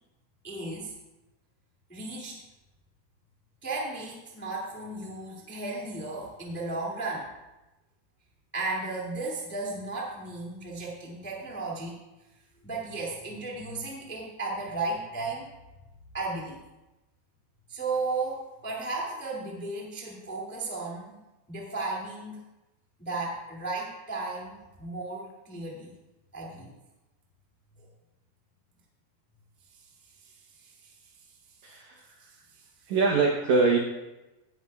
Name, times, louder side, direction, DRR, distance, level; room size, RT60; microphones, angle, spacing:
voice 1, 0.4-0.9 1.9-2.4 3.6-7.3 8.5-12.0 12.6-15.5 16.1-16.6 17.7-21.2 21.5-22.4 23.0-25.9 26.3-26.7 30.6-30.9 32.2-32.6, right 3 dB, 5° left, -3 dB, 0.8 m, -35 dB
voice 2, 31.6-32.1 32.9-33.8, right 4 dB, 75° right, 1 dB, 1.7 m, -24 dB
17.5 x 11.0 x 2.4 m, 1.0 s
omnidirectional pair, 4.7 m